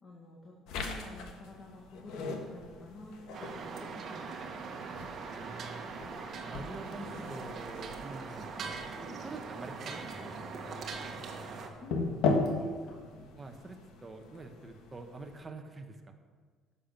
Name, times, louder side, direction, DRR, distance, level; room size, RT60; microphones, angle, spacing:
voice 1, 0.0-4.7 8.9-9.2 11.8-11.9 12.3-13.0, left 1 dB, 35° left, -1 dB, 1.8 m, -49 dB
sound 1, 0.7-15.4, left 3 dB, 75° left, 1.4 m, -39 dB
sound 2, 3.3-11.7, right 4 dB, 45° right, 1.5 m, -41 dB
voice 2, 5.3-5.9 6.4-8.8 9.2-10.7 13.4-16.1, right 3 dB, 20° right, 4 dB, 1.2 m, -46 dB
11.0 x 7.0 x 6.1 m, 1.5 s
cardioid pair, 120°, 0 cm